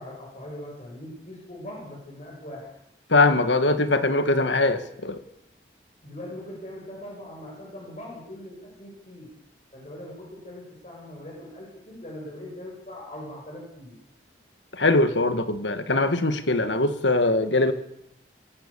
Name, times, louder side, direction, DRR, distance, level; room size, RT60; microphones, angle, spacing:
voice 1, 0.0-2.7 6.0-9.3 9.7-14.0, left 1 dB, 40° left, -2 dB, 6.9 m, -41 dB
voice 2, 3.1-5.2 14.7-17.7, left 2 dB, 85° left, 10 dB, 1.9 m, -22 dB
26.0 x 17.0 x 7.1 m, 0.78 s
head